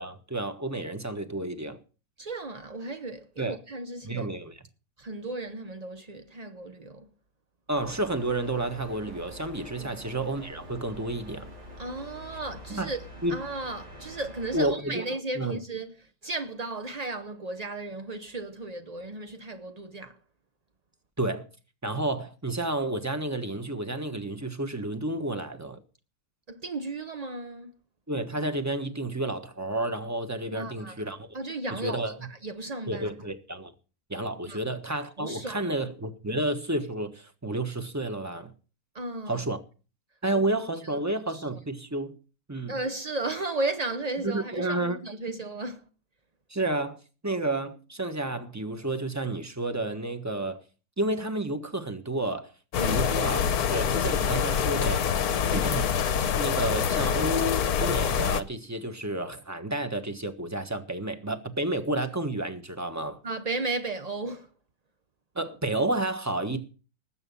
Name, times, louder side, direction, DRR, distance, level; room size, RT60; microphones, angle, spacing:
voice 1, 0.0-1.8 3.4-3.6 4.0-4.6 7.7-11.5 12.7-12.9 13.2-13.4 14.5-15.0 15.3-15.6 21.2-21.5 21.8-25.8 28.1-31.3 31.8-32.2 32.9-33.7 34.1-38.5 39.3-39.6 40.2-42.1 42.5-42.8 44.2-45.0 45.3-45.4 46.5-50.6 51.0-52.5 52.8-55.2 55.5-56.0 56.4-63.2 65.3-66.6, right 1 dB, 10° right, 1.1 m, -31 dB
voice 2, 2.2-4.3 5.0-7.1 9.8-10.0 11.8-20.2 26.5-27.7 30.5-31.0 31.3-33.1 34.5-34.6 35.2-35.6 38.9-39.4 40.3-40.6 40.9-41.0 41.3-41.6 42.7-45.8 52.8-53.1 63.2-64.5, right 2 dB, 55° right, 0.4 m, -35 dB
sound 1, 7.7-14.6, equal, 85° right, 6.0 m, -45 dB
sound 2, 52.7-58.4, left 7 dB, 60° left, 1.3 m, -26 dB
19.5 x 8.1 x 5.6 m
omnidirectional pair, 2.0 m